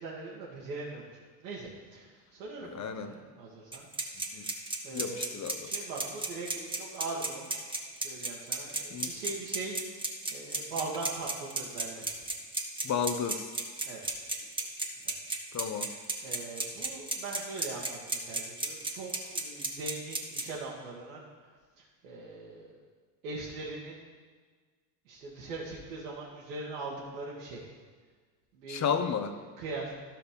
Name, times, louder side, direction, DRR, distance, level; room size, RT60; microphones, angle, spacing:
voice 1, 0.0-3.9 4.3-4.4 4.8-5.3 5.6-7.5 8.0-9.8 10.3-12.2 13.9-14.0 14.8-15.1 15.6-15.7 16.2-21.2 21.8-22.8 23.2-24.0 25.1-27.6 28.5-28.9 29.6-29.9, right 3 dB, 85° right, -6 dB, 1.9 m, -41 dB
voice 2, 2.6-3.1 4.3-4.5 4.9-5.7 8.9-9.1 12.8-13.5 15.5-15.9 28.7-29.3, left 7 dB, 35° left, 9 dB, 0.9 m, -32 dB
sound 1, 3.7-20.4, right 2 dB, 10° right, 1.7 m, -33 dB
12.5 x 5.9 x 5.2 m, 1.5 s
hypercardioid pair, 80°, 49 cm